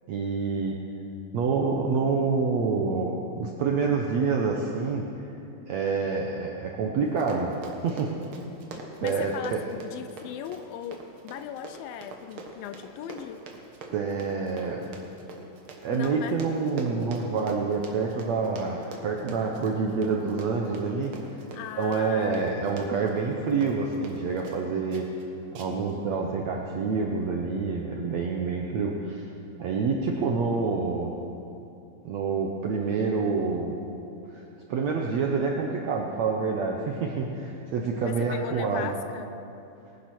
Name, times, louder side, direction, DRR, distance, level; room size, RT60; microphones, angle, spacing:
voice 1, 0.1-0.8 1.3-5.1 5.7-7.5 7.8-8.1 9.0-9.6 13.9-14.8 15.8-21.4 21.8-25.1 25.5-29.2 29.6-31.1 32.0-33.7 34.3-34.4 34.7-38.9, right 4 dB, 70° right, 0 dB, 1.6 m, -27 dB
Run, 7.0-24.6 24.9-25.2 25.5-25.9 26.3-26.4, right 3 dB, 55° right, 1.5 m, -43 dB
voice 2, 9.0-13.4 15.9-16.4 21.5-22.5 38.0-39.4, left 9 dB, 80° left, 10 dB, 2.2 m, -38 dB
20.5 x 10.0 x 6.0 m, 2.7 s
omnidirectional pair, 4.4 m